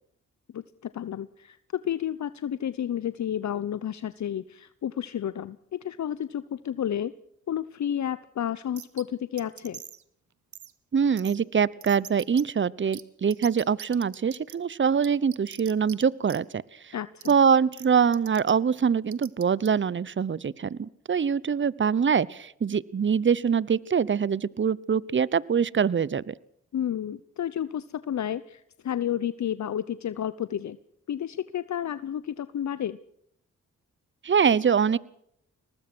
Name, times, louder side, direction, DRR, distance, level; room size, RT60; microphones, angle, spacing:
voice 1, 0.5-7.1 7.5-9.8 16.9-17.3 26.7-30.8 31.1-33.0, left 10 dB, 60° left, 15 dB, 0.9 m, -31 dB
sound 1, 8.8-9.0 9.4-10.0 10.5-10.7 11.2-11.4 11.8-12.4 12.9-13.0 13.3-14.5 15.0-16.0 16.3-16.4 17.2-17.3 17.7-17.9 18.1-18.5 19.1-19.7, right 9 dB, 65° right, 1.3 m, -43 dB
voice 2, 10.9-16.9 17.3-26.3 34.2-35.0, right 6 dB, 35° right, 22 dB, 0.9 m, -24 dB
23.0 x 19.0 x 6.2 m, 0.71 s
supercardioid pair, 45°, 32 cm